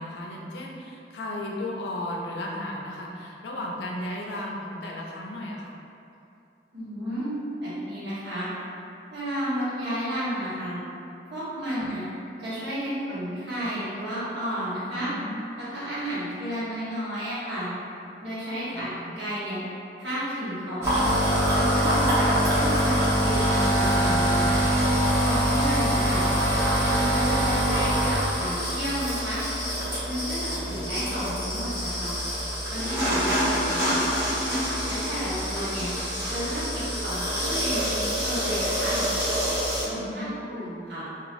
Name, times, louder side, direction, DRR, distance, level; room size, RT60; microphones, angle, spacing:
voice 1, 0.0-5.8 11.8-11.9 14.9-15.5 18.7-19.1 30.5-30.9 40.0-40.9, left 1 dB, 80° left, -2 dB, 0.4 m, -36 dB
voice 2, 6.7-8.5 9.1-10.8 11.3-12.0 12.4-15.1 15.6-17.7 18.2-19.6 20.0-21.1 21.5-24.6 25.2-26.2 26.9-29.4 30.0-32.1 32.7-34.1 34.8-35.9 36.3-39.0 39.8-41.0, equal, 90° right, -11 dB, 1.1 m, -32 dB
sound 1, 20.8-39.8, equal, 15° right, 0.8 m, -25 dB
3.0 x 2.4 x 2.5 m, 2.7 s
head